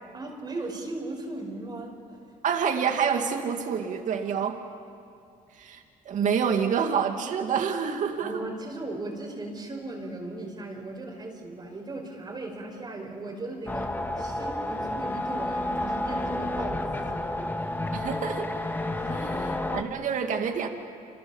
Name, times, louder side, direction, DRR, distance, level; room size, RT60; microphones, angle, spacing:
voice 1, 0.1-2.2 8.2-13.9 14.2-17.5 18.9-19.2, right 2 dB, 30° right, 0 dB, 5.3 m, -37 dB
voice 2, 2.4-4.6 5.5-8.4 17.9-18.5 19.1-20.7, right 7 dB, 65° right, 5 dB, 2.3 m, -27 dB
sound 1, 13.7-19.8, left 1 dB, 15° left, 2.0 m, -30 dB
27.5 x 27.5 x 7.3 m, 2.4 s
cardioid pair, 100°, 14 cm